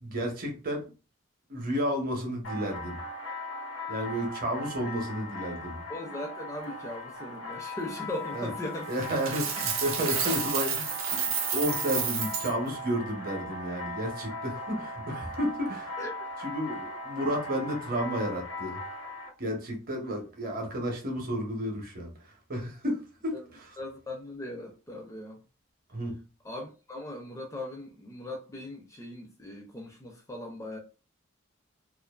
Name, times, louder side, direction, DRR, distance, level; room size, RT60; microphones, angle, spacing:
voice 1, 0.0-0.9 1.5-3.0 3.9-5.8 8.3-8.5 8.9-15.9 16.4-18.8 19.4-23.8 25.9-26.2, equal, 45° right, 0.7 m, -32 dB
sound 1, 2.4-19.3, left 1 dB, 80° left, 1.1 m, -39 dB
voice 2, 5.9-9.1 16.0-16.1 21.1-21.2 23.3-23.4 23.8-25.4 26.4-30.8, left 1 dB, 15° left, 0.4 m, -39 dB
Coin (dropping), 9.0-12.5, right 7 dB, 80° right, 0.6 m, -30 dB
2.4 x 2.3 x 2.2 m
head